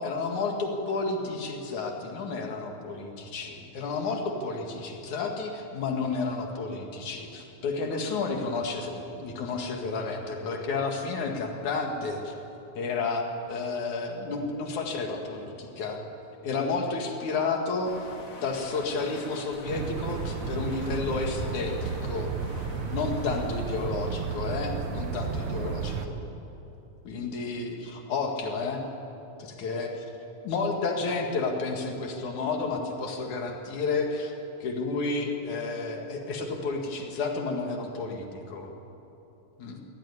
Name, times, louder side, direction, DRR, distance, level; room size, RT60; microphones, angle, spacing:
voice 1, 0.0-12.3 12.8-16.0 16.4-18.1 18.4-22.3 22.9-26.2 27.1-28.8 29.4-30.1 30.4-34.3 34.6-38.7 39.6-39.8, left 4 dB, 80° left, 2 dB, 3.4 m, -31 dB
sound 1, 17.8-23.5, left 2 dB, 35° left, 1.5 m, -45 dB
sound 2, 19.7-26.1, right 5 dB, 80° right, 2.6 m, -32 dB
24.0 x 16.5 x 9.8 m, 2.9 s
omnidirectional pair, 3.4 m